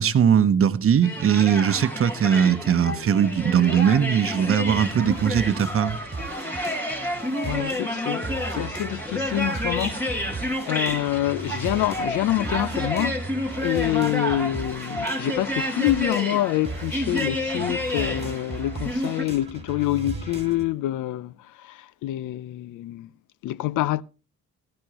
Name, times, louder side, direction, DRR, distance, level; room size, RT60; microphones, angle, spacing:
voice 1, 0.0-6.0, right 8 dB, 45° right, 1.0 m, -20 dB
sound 1, 1.0-19.2, equal, 5° left, 4.5 m, -30 dB
sound 2, 4.7-20.7, right 3 dB, 20° right, 3.1 m, -37 dB
voice 2, 7.4-13.2 13.6-23.1 23.4-24.0, left 15 dB, 85° left, 0.6 m, -26 dB
16.5 x 12.5 x 3.0 m
cardioid pair, 90°, 30 cm